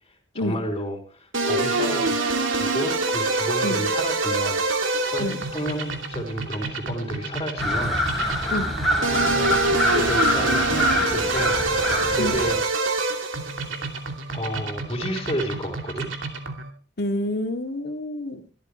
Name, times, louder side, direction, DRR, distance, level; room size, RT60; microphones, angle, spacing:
voice 1, 0.3-2.2 2.5-8.0 8.9-12.6 14.3-16.1, equal, 25° left, 0 dB, 3.6 m, -31 dB
sound 1, 1.3-16.7, right 3 dB, 90° right, 2.7 m, -26 dB
sound 2, 7.6-12.6, left 1 dB, ahead, 4.0 m, -25 dB
voice 2, 17.0-18.4, left 1 dB, 55° left, 4 dB, 2.4 m, -28 dB
24.0 x 13.5 x 3.3 m, 0.37 s
head